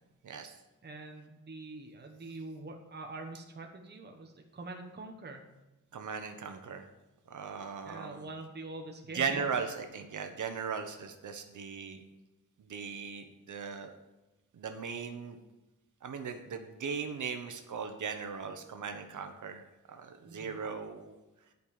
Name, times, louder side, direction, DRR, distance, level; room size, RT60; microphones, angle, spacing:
voice 1, 0.2-0.5 5.9-6.9 7.3-8.3 9.1-12.0 12.6-13.9 14.5-15.4 16.0-19.6 19.9-21.1, right 6 dB, 75° right, 6 dB, 1.1 m, -38 dB
voice 2, 0.8-5.5 7.8-9.5 20.2-20.6, right 2 dB, 35° right, 2 dB, 1.1 m, -45 dB
10.5 x 5.4 x 6.6 m, 1.0 s
wide cardioid pair, 160°, 31 cm